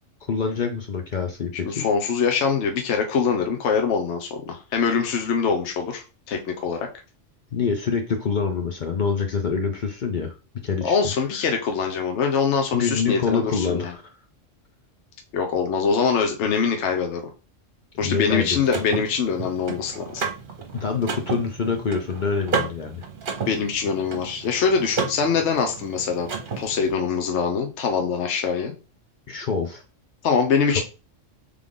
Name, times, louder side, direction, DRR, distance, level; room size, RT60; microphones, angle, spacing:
voice 1, 0.3-1.8 7.5-10.3 10.6-11.0 12.7-14.0 18.0-18.6 20.7-23.0 29.3-29.8 30.7-30.8, left 5 dB, 50° left, 5 dB, 0.6 m, -25 dB
voice 2, 1.7-6.9 10.8-13.9 15.3-17.2 18.0-20.2 23.5-26.3 26.6-28.7 30.2-30.8, left 5 dB, 65° left, 4 dB, 1.0 m, -23 dB
Car / Mechanisms, 18.0-26.9, right 4 dB, 45° right, 0.9 m, -32 dB
3.4 x 3.3 x 3.7 m, 0.31 s
omnidirectional pair, 1.3 m